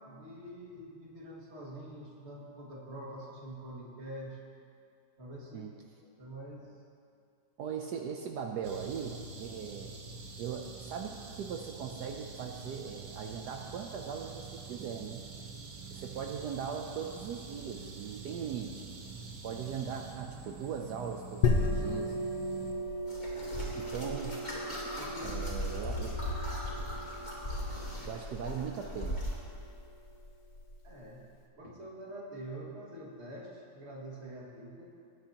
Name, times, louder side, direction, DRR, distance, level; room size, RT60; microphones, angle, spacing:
voice 1, 0.0-4.4 5.2-5.7 6.0-6.7 21.6-22.1 25.0-25.4 25.7-25.8 30.8-31.2 31.6-35.0, right 1 dB, 35° right, -4 dB, 2.3 m, -46 dB
voice 2, 7.6-9.9 10.4-15.2 15.9-18.8 19.4-22.1 23.8-24.5 25.2-26.1 26.9-27.1 28.0-29.2, right 7 dB, 70° right, 3 dB, 1.2 m, -39 dB
sound 1, 8.6-22.7, right 5 dB, 55° right, 1.4 m, -46 dB
sound 2, 21.4-30.8, left 2 dB, 70° left, 1.5 m, -36 dB
sound 3, 23.1-29.4, equal, 25° left, 2.9 m, -38 dB
19.5 x 9.7 x 2.9 m, 2.4 s
omnidirectional pair, 1.9 m